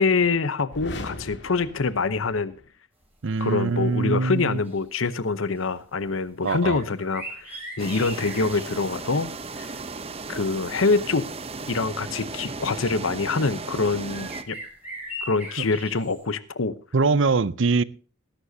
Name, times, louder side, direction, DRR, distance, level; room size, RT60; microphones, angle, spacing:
voice 1, 0.0-2.5 3.4-9.3 9.6-9.8 10.3-11.3 11.7-14.6 15.2-16.7, left 4 dB, 80° left, 0.8 m, -25 dB
sound 1, 0.7-2.7, left 1 dB, 60° left, 2.1 m, -38 dB
voice 2, 3.2-4.6 6.4-6.8 15.6-15.7 16.9-17.8, right 4 dB, 65° right, 0.6 m, -23 dB
sound 2, 3.4-3.5 3.8-4.0 4.4-5.1 5.5-5.7 6.4-8.8 10.9-11.0 12.0-12.1 12.7-13.3 14.1-16.2, equal, 10° right, 5.6 m, -39 dB
sound 3, 7.8-14.4, right 3 dB, 30° right, 0.9 m, -36 dB
20.0 x 11.5 x 2.8 m
head